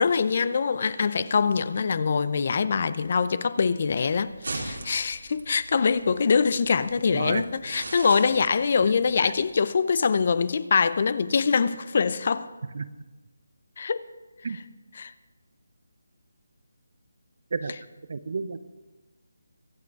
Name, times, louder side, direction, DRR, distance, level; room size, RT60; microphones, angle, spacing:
voice 1, 0.0-12.5 13.8-14.0 14.5-14.6 14.9-15.1 17.7-17.8, left 5 dB, 45° left, 0.6 m, -24 dB
sound 1, 4.1-9.5, right 2 dB, 85° right, 3.3 m, -40 dB
voice 2, 18.1-18.6, right 4 dB, 55° right, 0.9 m, -30 dB
23.5 x 8.4 x 4.8 m
figure-of-eight pair, 165°, 0 cm